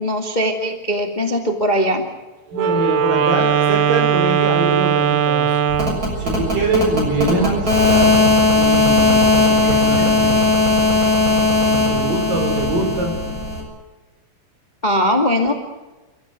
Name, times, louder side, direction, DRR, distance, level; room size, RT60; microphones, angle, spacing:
voice 1, 0.0-2.0 14.8-15.5, equal, 30° left, 4 dB, 0.8 m, -20 dB
voice 2, 2.5-5.7 6.2-8.1 8.5-10.4 11.7-13.1, right 2 dB, 50° right, 3 dB, 6.4 m, -23 dB
Wind instrument woodwind instrument, 2.5-6.1, right 7 dB, 80° right, 2.0 m, -18 dB
sound 1, 5.7-13.6, left 3 dB, 20° right, 7.0 m, -17 dB
29.0 x 15.0 x 9.4 m, 1.1 s
omnidirectional pair, 5.3 m